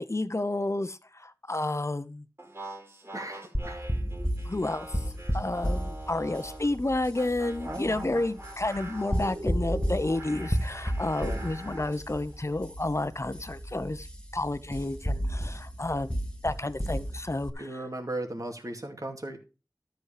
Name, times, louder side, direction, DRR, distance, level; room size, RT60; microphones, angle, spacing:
voice 1, 0.0-2.2 4.4-4.9 5.3-14.1 14.3-16.1 16.4-17.7, left 2 dB, 45° left, 0.9 m, -30 dB
sound 1, 2.4-6.7 7.2-12.0, right 1 dB, 35° right, 2.8 m, -43 dB
voice 2, 3.1-3.9 7.7-8.2 11.2-11.4 17.6-19.4, right 1 dB, 55° right, 2.3 m, -37 dB
sound 2, 3.5-17.5, equal, 15° left, 1.7 m, -33 dB
12.5 x 6.5 x 5.0 m
wide cardioid pair, 40°, 7 cm